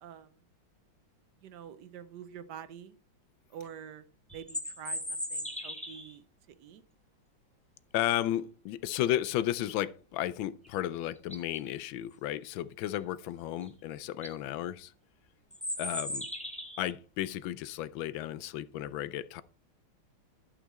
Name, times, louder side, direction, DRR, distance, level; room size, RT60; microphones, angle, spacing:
voice 1, 0.0-0.4 1.4-2.9 3.5-4.0 4.3-6.2 6.6-6.8, right 8 dB, 65° right, 1.2 m, -47 dB
sound 1, 4.3-6.1 10.6-10.7 11.2-11.6 13.6-13.7 14.1-14.3 15.5-16.9, left 1 dB, 5° left, 1.0 m, -37 dB
voice 2, 7.9-14.9 15.8-16.3 16.8-19.4, left 13 dB, 80° left, 1.3 m, -33 dB
11.0 x 5.8 x 4.1 m
omnidirectional pair, 2.2 m